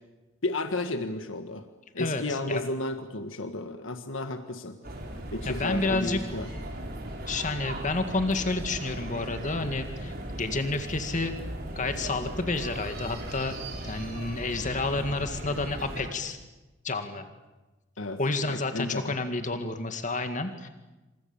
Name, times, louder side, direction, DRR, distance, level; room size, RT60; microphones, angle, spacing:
voice 1, 0.4-1.6 1.9-4.8 5.3-6.5 18.0-18.2 18.5-19.2, left 2 dB, 90° left, 7 dB, 1.7 m, -32 dB
voice 2, 2.0-2.6 5.5-6.2 7.3-11.3 11.8-13.6 13.8-16.4 16.8-17.3 18.2-20.7, left 3 dB, 40° left, 7 dB, 2.1 m, -30 dB
sound 1, 4.8-16.1, right 1 dB, 55° right, 5.6 m, -37 dB
28.5 x 26.5 x 7.2 m, 1.1 s
head